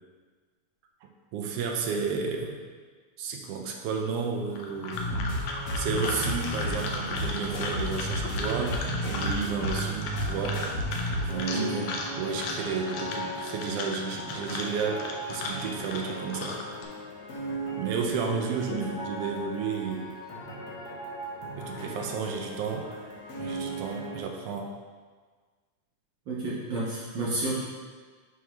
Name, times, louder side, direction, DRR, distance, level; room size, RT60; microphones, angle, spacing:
voice 1, 1.0-2.6 3.2-5.0 5.7-10.6 11.2-11.7 12.1-16.6 17.7-20.1 21.5-22.9 23.4-24.7, right 5 dB, 80° right, 1 dB, 1.4 m, -32 dB
sound 1, 4.5-16.8, left 3 dB, 85° left, 1.3 m, -36 dB
sound 2, 4.9-24.2, right 1 dB, 60° left, 1.7 m, -35 dB
voice 2, 11.5-11.9 18.7-18.8 26.3-27.6, right 2 dB, 60° right, -7 dB, 1.2 m, -31 dB
9.3 x 3.7 x 3.0 m, 1.5 s
omnidirectional pair, 3.3 m